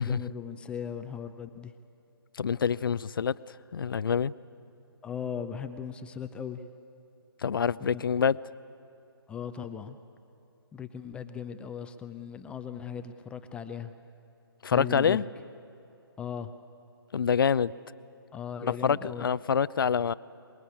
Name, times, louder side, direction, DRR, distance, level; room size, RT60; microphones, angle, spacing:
voice 1, 0.0-1.7 5.0-6.6 7.8-8.0 9.3-10.0 10.7-13.9 14.7-15.2 16.2-16.5 18.3-19.3, left 7 dB, 10° left, 0.5 m, -38 dB
voice 2, 2.3-3.3 3.7-4.3 7.4-8.4 14.6-15.3 17.1-17.7 18.6-20.1, left 7 dB, 60° left, 0.5 m, -26 dB
24.0 x 21.5 x 8.5 m
figure-of-eight pair, 140°, 13 cm